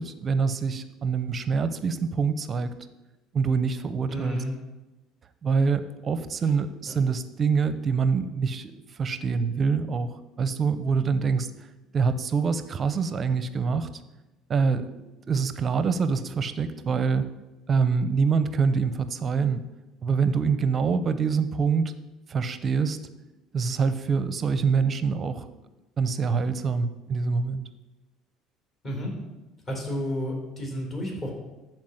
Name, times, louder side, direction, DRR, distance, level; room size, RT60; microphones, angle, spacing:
voice 1, 0.0-2.8 3.3-4.4 5.4-11.5 11.9-13.9 14.5-14.9 15.3-17.3 17.7-19.6 20.0-21.9 22.3-23.0 23.5-25.5 26.0-27.7, right 5 dB, 30° right, 12 dB, 0.7 m, -25 dB
voice 2, 4.1-4.5 6.9-7.0 28.8-29.1 29.7-31.3, equal, 30° left, -1 dB, 4.0 m, -31 dB
13.5 x 4.6 x 7.9 m, 1.1 s
cardioid pair, 140°, 0 cm